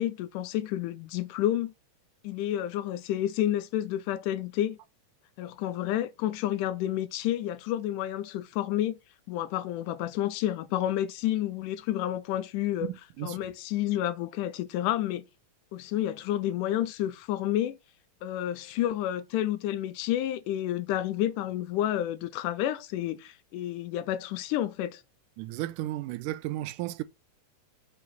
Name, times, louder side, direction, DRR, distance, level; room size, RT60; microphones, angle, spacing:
voice 1, 0.0-1.7 2.2-4.8 5.4-9.0 9.3-12.9 13.2-15.2 15.7-17.8 18.2-25.0, left 12 dB, 85° left, 2.2 m, -30 dB
voice 2, 12.8-13.4 25.4-27.0, right 15 dB, 85° right, 2.1 m, -34 dB
6.3 x 4.8 x 5.6 m
omnidirectional pair, 3.7 m